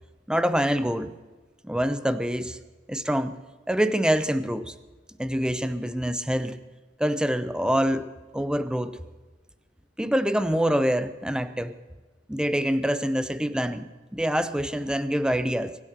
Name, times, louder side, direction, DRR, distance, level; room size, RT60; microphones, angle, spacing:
voice 1, 0.3-1.1 1.6-2.6 2.9-3.3 3.7-4.7 5.2-6.6 7.0-8.1 8.3-9.0 10.0-11.8 12.3-15.8, equal, 5° right, 13 dB, 0.7 m, -25 dB
23.5 x 8.4 x 6.8 m, 1.3 s
head